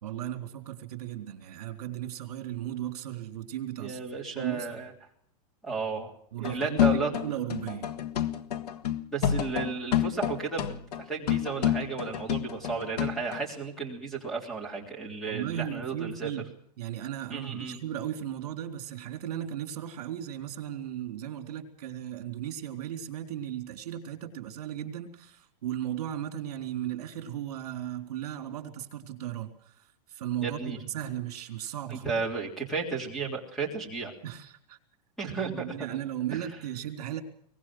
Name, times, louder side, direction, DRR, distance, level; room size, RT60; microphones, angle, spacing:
voice 1, 0.0-4.0 4.3-4.7 6.3-7.9 15.2-16.4 16.8-32.1 34.2-34.8 35.3-37.2, right 11 dB, 60° right, 6 dB, 3.7 m, -36 dB
voice 2, 3.8-4.9 5.6-6.1 6.4-7.1 9.1-16.3 17.3-17.8 30.4-30.8 31.9-34.1 35.2-35.9 36.3-36.5, right 4 dB, ahead, 2 dB, 3.3 m, -33 dB
sound 1, 6.4-13.4, left 10 dB, 70° left, 1.6 m, -28 dB
23.0 x 19.5 x 6.1 m, 0.66 s
supercardioid pair, 175°, 21 cm